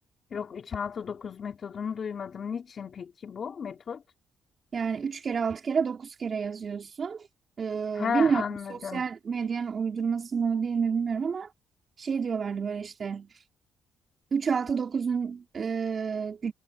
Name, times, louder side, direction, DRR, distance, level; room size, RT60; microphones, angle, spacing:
voice 1, 0.3-4.0 7.9-9.0, left 6 dB, 50° left, 4.7 m, -34 dB
voice 2, 4.7-7.3 7.6-8.4 8.7-11.5 12.0-13.3 14.3-16.5, right 6 dB, 45° right, 4.7 m, -29 dB
cardioid pair, 90°, 0 cm